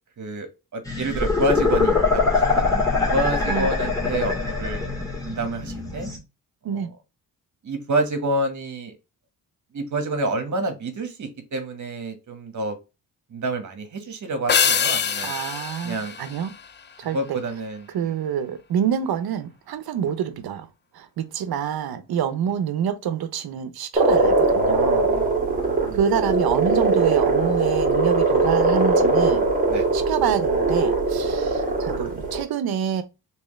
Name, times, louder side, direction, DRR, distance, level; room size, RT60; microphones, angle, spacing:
voice 1, 0.2-2.8 3.1-4.8 5.3-6.1 6.7-6.9 7.6-8.9 9.7-12.8 13.3-15.3 15.8-16.2 17.0-18.1 25.1-26.0 29.7-29.9, right 2 dB, 50° right, 1.3 m, -28 dB
sound 1, 0.9-6.2, left 4 dB, 10° left, 1.8 m, -23 dB
sound 2, 14.5-17.1, left 7 dB, 30° left, 0.4 m, -24 dB
voice 2, 15.2-16.5 17.0-17.4 17.9-20.7 20.9-25.1 25.9-29.4 29.9-33.0, right 8 dB, 75° right, 0.8 m, -26 dB
sound 3, 24.0-32.4, right 3 dB, 20° right, 1.5 m, -21 dB
3.4 x 3.1 x 3.1 m
cardioid pair, 80°, 37 cm